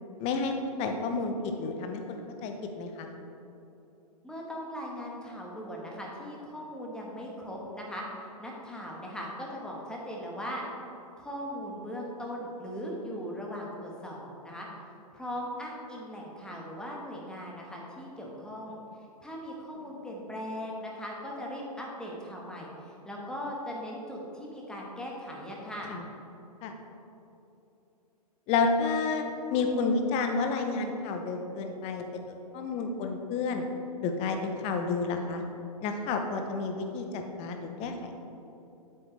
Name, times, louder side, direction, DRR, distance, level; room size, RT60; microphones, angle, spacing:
voice 1, 0.2-3.1 25.9-26.0 26.6-26.8 28.5-29.2 29.5-33.6 34.0-35.4 35.8-38.2, left 4 dB, 30° left, 5 dB, 0.9 m, -30 dB
voice 2, 4.2-10.6 11.2-14.7 15.1-18.8 19.2-25.9, equal, 5° left, -3 dB, 1.4 m, -39 dB
8.2 x 7.7 x 3.3 m, 2.9 s
hypercardioid pair, 115°, 20 cm